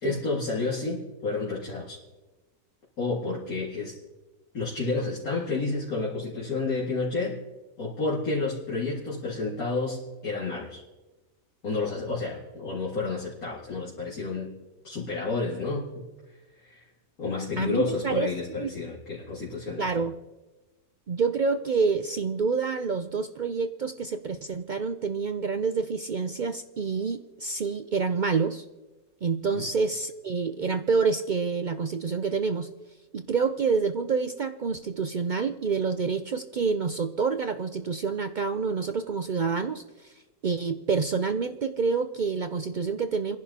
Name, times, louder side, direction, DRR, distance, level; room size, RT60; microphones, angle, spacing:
voice 1, 0.0-2.0 3.0-4.0 4.5-7.4 7.8-10.8 11.6-14.5 14.8-16.0 16.3-16.9 17.2-20.0 29.5-29.7, left 3 dB, 70° left, -6 dB, 2.6 m, -30 dB
voice 2, 17.6-18.3 18.6-18.7 19.8-20.1 21.1-28.6 29.2-32.7 33.1-40.1 40.4-43.4, right 5 dB, 70° right, 8 dB, 0.4 m, -27 dB
30.0 x 11.0 x 2.9 m, 1.1 s
omnidirectional pair, 1.6 m